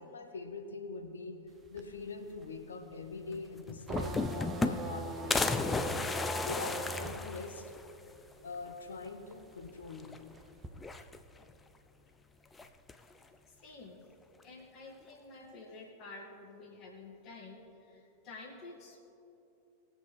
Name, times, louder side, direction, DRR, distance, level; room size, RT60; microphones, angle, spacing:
voice 1, 0.0-1.4 1.7-6.1 6.4-7.7 8.4-10.2, left 4 dB, 70° left, 6 dB, 1.0 m, -43 dB
sound 1, 1.5-8.6 8.9-10.7, right 2 dB, 15° right, 0.9 m, -41 dB
sound 2, 3.3-3.4 3.7-5.0 5.3-7.9 8.3-8.4 8.7-8.8 9.9-10.4 10.8-11.5 12.5-13.1, left 3 dB, 15° left, 0.5 m, -34 dB
voice 2, 13.5-14.0 14.4-19.1, left 3 dB, 35° left, -1 dB, 2.2 m, -50 dB
19.5 x 7.4 x 3.4 m, 2.9 s
figure-of-eight pair, 90°, 0 cm